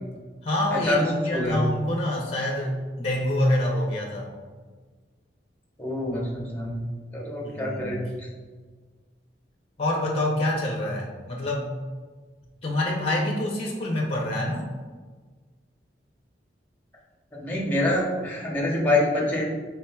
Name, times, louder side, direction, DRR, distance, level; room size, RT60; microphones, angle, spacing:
voice 1, 0.4-4.3 7.4-8.0 9.8-11.7 12.6-14.7, left 1 dB, 35° left, -1 dB, 0.5 m, -26 dB
voice 2, 1.3-1.7 5.8-6.8 7.1-8.1 17.3-19.4, left 1 dB, 10° left, -5 dB, 0.9 m, -25 dB
4.4 x 3.5 x 2.2 m, 1.4 s
head